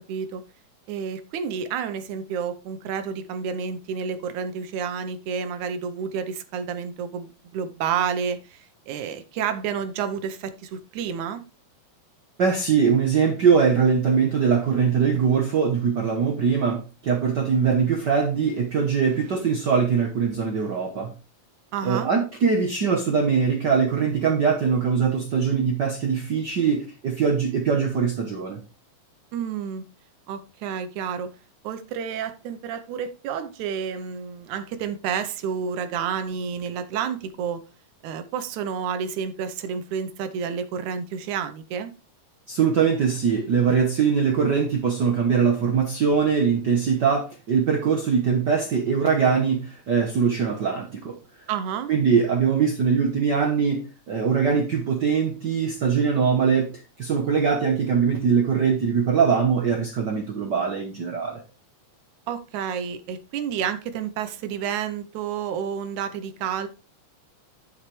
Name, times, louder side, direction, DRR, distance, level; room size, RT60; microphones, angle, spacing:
voice 1, 0.1-0.4 0.9-11.4 21.7-22.1 29.3-29.8 30.3-31.3 31.6-37.6 38.0-41.9 51.5-51.9 62.3-66.7, right 7 dB, 80° right, 2.3 m, -30 dB
voice 2, 12.4-21.1 21.8-28.6 42.5-51.2 51.9-56.7 57.0-61.4, right 6 dB, 65° right, 1.1 m, -22 dB
10.5 x 6.5 x 3.2 m
omnidirectional pair, 3.4 m